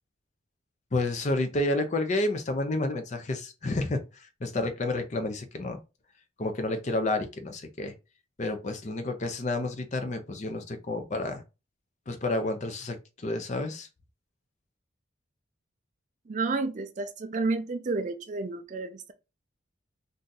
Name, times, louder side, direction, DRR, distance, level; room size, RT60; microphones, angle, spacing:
voice 1, 0.9-5.8 6.4-7.9 8.4-11.4 12.1-13.9, left 2 dB, 35° left, 0.5 m, -30 dB
voice 2, 16.3-19.1, right 3 dB, 35° right, 0.4 m, -31 dB
2.6 x 2.3 x 3.8 m
head